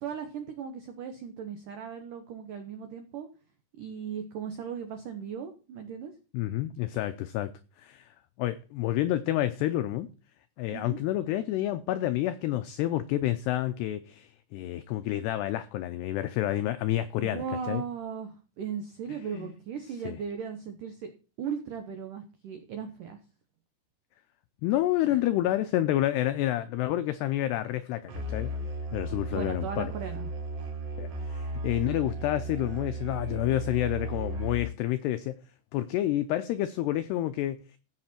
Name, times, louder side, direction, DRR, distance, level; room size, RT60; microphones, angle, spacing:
voice 1, 0.0-3.3 3.8-6.1 10.7-11.0 17.2-21.1 21.4-23.2 25.1-25.2 29.3-30.3, right 7 dB, 85° right, 1.8 m, -37 dB
voice 2, 6.3-7.5 7.8-8.1 8.4-10.1 10.6-17.8 19.1-19.5 20.0-20.2 24.6-28.5 28.9-29.9 31.0-35.4 35.7-37.6, left 14 dB, 90° left, 2.3 m, -29 dB
Musical instrument, 28.1-34.9, right 1 dB, 65° right, 4.5 m, -35 dB
15.5 x 6.6 x 4.4 m
omnidirectional pair, 5.6 m